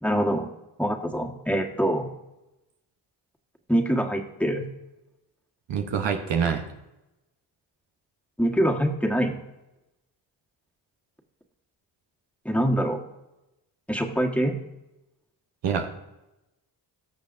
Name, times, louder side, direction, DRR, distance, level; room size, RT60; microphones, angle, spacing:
voice 1, 0.0-0.5 0.8-2.1 3.7-4.6 8.4-9.3 12.5-13.0 13.9-14.6, equal, 5° left, 2 dB, 1.6 m, -24 dB
voice 2, 5.7-6.6 15.6-15.9, right 7 dB, 75° right, 5 dB, 1.1 m, -25 dB
18.0 x 6.6 x 2.7 m, 0.95 s
supercardioid pair, 50°, 43 cm